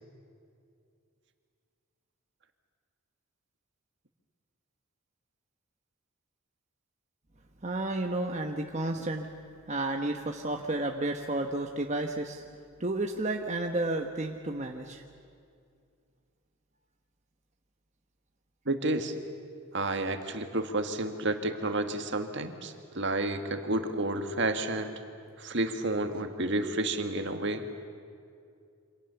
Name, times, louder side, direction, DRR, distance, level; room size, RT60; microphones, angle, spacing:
voice 1, 7.6-9.3 9.7-12.4 12.8-15.0, right 2 dB, 35° right, 3 dB, 1.1 m, -31 dB
voice 2, 18.7-19.1 19.7-25.0 25.4-27.6, right 2 dB, 55° right, 6 dB, 1.9 m, -30 dB
28.5 x 26.0 x 7.1 m, 2.4 s
head